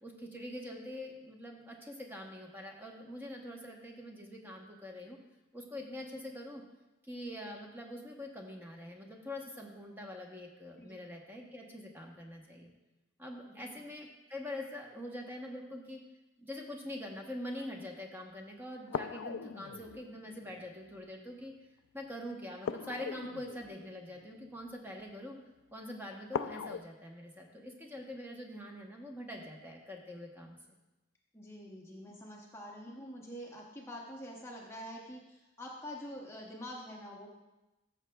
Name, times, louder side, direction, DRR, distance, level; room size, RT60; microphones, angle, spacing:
voice 1, 0.0-5.2 5.5-6.6 7.0-12.7 13.2-16.0 16.4-21.5 21.9-25.4 25.7-30.6, left 1 dB, 10° right, 0 dB, 0.9 m, -44 dB
sound 1, 18.9-21.0 22.6-24.9 26.3-26.8, left 7 dB, 75° left, 0.3 m, -41 dB
voice 2, 31.3-37.3, equal, 15° left, -1 dB, 0.7 m, -46 dB
14.0 x 6.5 x 2.3 m, 1.0 s
head